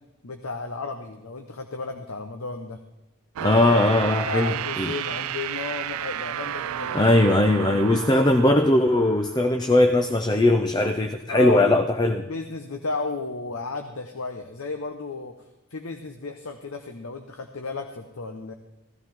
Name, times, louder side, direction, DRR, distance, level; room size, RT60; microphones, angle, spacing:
voice 1, 0.2-2.8 3.4-3.8 4.2-7.2 7.6-8.2 11.3-11.8 12.3-15.3 15.7-18.5, left 3 dB, 70° left, 6 dB, 0.9 m, -33 dB
voice 2, 3.4-4.9 6.9-12.2, left 1 dB, 20° left, 7 dB, 0.5 m, -20 dB
sound 1, 3.4-9.9, right 10 dB, 80° right, 0.4 m, -32 dB
16.0 x 13.0 x 3.6 m, 0.99 s
head